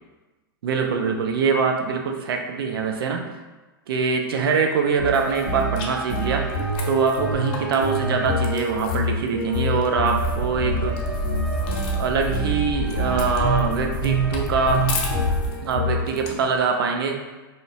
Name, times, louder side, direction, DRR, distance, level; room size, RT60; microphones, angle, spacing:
voice 1, 0.6-3.2 3.9-6.5 6.9-11.0 11.9-14.9 15.6-17.2, right 5 dB, 80° right, 4 dB, 0.4 m, -23 dB
sound 1, 5.0-16.2, right 1 dB, 5° right, 1.1 m, -27 dB
sound 2, 5.1-16.8, left 4 dB, 35° left, 0.4 m, -38 dB
sound 3, 10.1-15.5, equal, 80° left, 0.7 m, -29 dB
2.7 x 2.0 x 2.7 m, 1.2 s
supercardioid pair, 145°, 12 cm